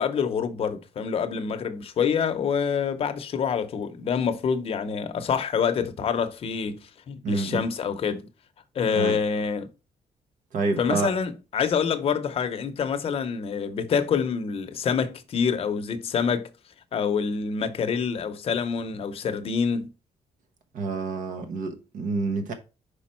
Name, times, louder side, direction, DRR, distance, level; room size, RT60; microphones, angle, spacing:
voice 1, 0.0-8.3 8.7-9.7 10.8-16.5 16.9-19.9, left 6 dB, 50° left, 0.7 m, -26 dB
voice 2, 7.2-7.6 8.9-9.2 10.5-11.1 20.7-22.5, right 3 dB, 85° right, 1.0 m, -28 dB
5.2 x 5.0 x 4.3 m
wide cardioid pair, 175°, 13 cm